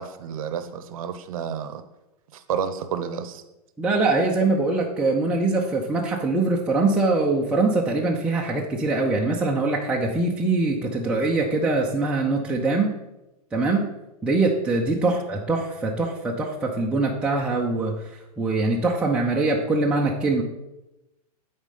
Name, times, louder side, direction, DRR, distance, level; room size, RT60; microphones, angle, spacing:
voice 1, 0.0-1.8 2.3-3.4, right 7 dB, 60° right, 11 dB, 0.8 m, -31 dB
voice 2, 3.8-12.9 13.5-13.9 14.2-18.0 18.4-20.4, right 3 dB, 5° right, -2 dB, 0.6 m, -23 dB
7.0 x 4.3 x 5.4 m, 0.96 s
hypercardioid pair, 135°, 20 cm